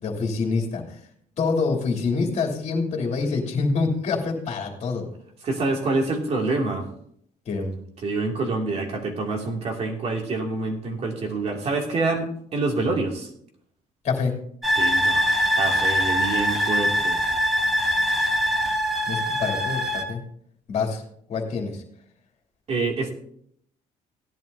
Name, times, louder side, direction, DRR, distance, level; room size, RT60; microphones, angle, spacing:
voice 1, 0.0-0.8 1.4-5.0 7.5-7.8 14.0-14.3 19.1-20.2 20.7-21.0 21.3-21.8, left 4 dB, 50° left, 1 dB, 2.8 m, -26 dB
voice 2, 5.4-6.9 8.0-13.3 14.8-15.3 15.6-17.2 22.7-23.1, right 3 dB, 45° right, 1 dB, 2.5 m, -26 dB
sound 1, 14.6-20.0, equal, ahead, 2.0 m, -23 dB
16.5 x 11.0 x 2.7 m, 0.68 s
cardioid pair, 125°, 15 cm